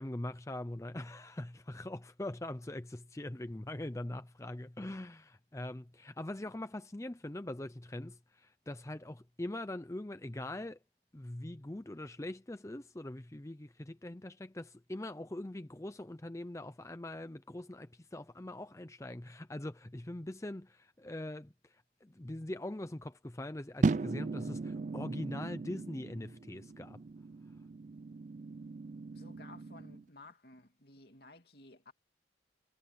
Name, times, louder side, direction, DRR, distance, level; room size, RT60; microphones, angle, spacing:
voice 1, 0.0-10.8 11.1-27.0, left 1 dB, 15° left, 0.6 m, -42 dB
sound 1, 23.8-30.0, right 3 dB, 45° right, 0.4 m, -37 dB
voice 2, 29.1-31.9, left 2 dB, 60° left, 2.8 m, -55 dB
head